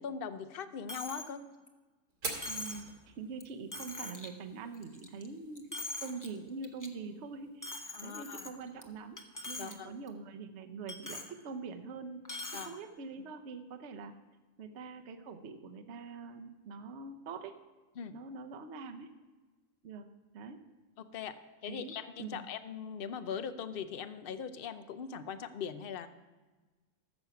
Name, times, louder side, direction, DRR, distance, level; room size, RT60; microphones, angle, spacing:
voice 1, 0.0-1.4 7.9-8.5 9.6-10.0 12.5-12.8 18.0-18.2 21.0-21.3 21.6-26.1, left 7 dB, 55° left, 11 dB, 0.6 m, -41 dB
Coin (dropping), 0.9-1.3 1.7-1.8 2.4-2.9 3.4-3.5 3.7-4.3 4.7-5.3 5.6-6.3 6.6-6.9 7.6-8.8 9.2-9.7 10.1-10.2 10.9-11.3 12.2-12.7, left 2 dB, 15° left, 0.7 m, -42 dB
Fire, 2.1-10.1, right 3 dB, 80° right, 2.6 m, -49 dB
voice 2, 2.5-12.3 12.5-14.1 14.6-17.6 18.1-19.1 19.8-20.1 20.3-20.6 21.7-22.4, right 4 dB, 55° right, 5 dB, 1.0 m, -44 dB
14.0 x 7.1 x 5.8 m, 1.3 s
omnidirectional pair, 1.6 m